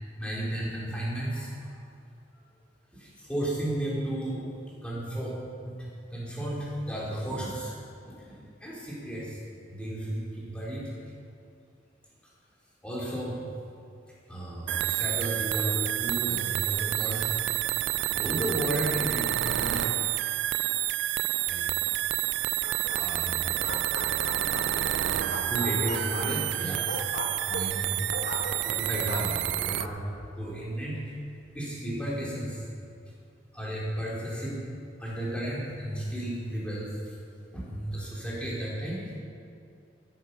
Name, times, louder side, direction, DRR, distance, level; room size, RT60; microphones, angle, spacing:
voice 1, 0.2-1.8 2.9-4.5 4.8-5.4 5.6-5.8 6.1-7.7 8.1-9.4 9.7-10.9 12.8-13.4 14.3-17.3 18.1-19.8 21.5-21.9 22.9-23.6 24.9-26.8 27.5-28.1 28.6-30.0 30.4-31.0 31.5-32.7 33.5-34.6 35.0-37.2 37.5-39.1, right 1 dB, 5° left, -6 dB, 3.5 m, -33 dB
sound 1, 14.7-29.9, right 14 dB, 80° right, 0.3 m, -29 dB
sound 2, 22.6-23.2 23.5-24.9 25.3-28.8 29.1-29.9, left 2 dB, 80° left, 1.9 m, -37 dB
14.0 x 10.5 x 6.7 m, 2.4 s
head